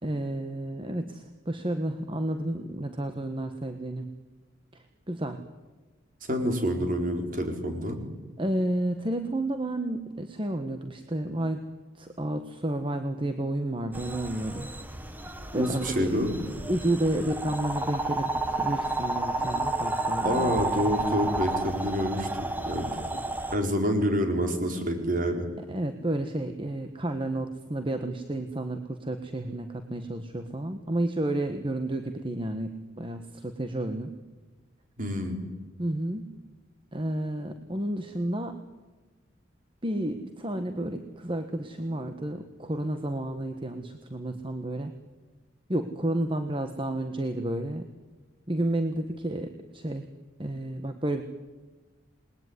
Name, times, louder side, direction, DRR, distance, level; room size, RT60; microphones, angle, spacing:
voice 1, 0.0-4.1 5.1-5.4 8.4-11.6 12.0-14.7 15.5-16.1 16.7-18.3 18.6-20.5 25.7-34.1 35.8-36.3 36.9-38.6 39.8-44.9 45.7-47.9 48.5-50.1 50.4-51.2, right 1 dB, 25° right, 7 dB, 1.4 m, -31 dB
voice 2, 6.2-8.0 15.5-16.3 20.2-22.9 23.5-25.5 35.0-35.4, equal, 45° right, 4 dB, 4.8 m, -27 dB
sound 1, 13.9-23.5, right 2 dB, 10° right, 1.8 m, -31 dB
28.5 x 20.5 x 9.7 m, 1.3 s
head